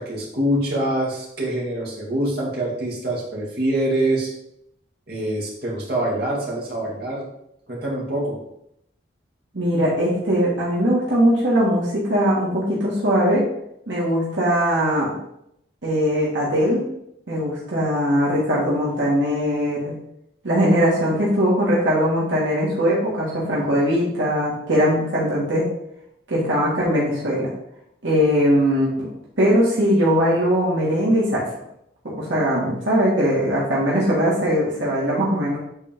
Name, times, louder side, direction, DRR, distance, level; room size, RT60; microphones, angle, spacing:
voice 1, 0.0-4.3 5.1-7.2 7.7-8.4, right 1 dB, 55° right, -5 dB, 2.3 m, -25 dB
voice 2, 9.5-13.4 13.9-15.2 15.8-16.8 17.3-20.0 20.4-25.7 26.3-27.5 28.0-29.1 29.4-31.5 32.0-35.6, equal, 75° right, -6 dB, 2.0 m, -20 dB
8.2 x 4.2 x 3.7 m, 0.77 s
head